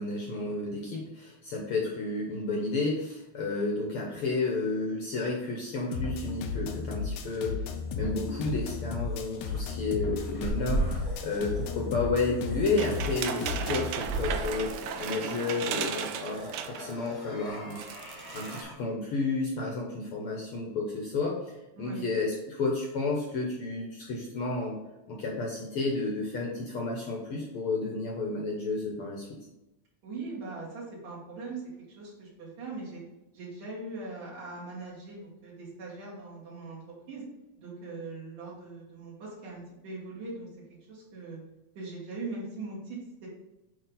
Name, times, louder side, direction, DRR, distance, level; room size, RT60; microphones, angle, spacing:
voice 1, 0.0-7.7 7.9-14.7 15.0-17.8 18.3-24.8 25.1-29.4, left 3 dB, 65° left, -1 dB, 1.5 m, -31 dB
sound 1, 5.9-13.9, left 5 dB, 90° left, 2.2 m, -35 dB
sound 2, 7.9-18.7, right 1 dB, 15° left, 1.0 m, -38 dB
sound 3, 12.8-17.0 17.4-17.5 17.7-18.6, right 8 dB, 85° right, 1.3 m, -35 dB
voice 2, 30.0-31.6 32.0-33.0 33.3-37.2 37.6-40.5 40.9-41.4 41.8-43.3, right 3 dB, 65° right, -7 dB, 3.5 m, -40 dB
8.3 x 3.3 x 3.9 m, 0.96 s
omnidirectional pair, 3.4 m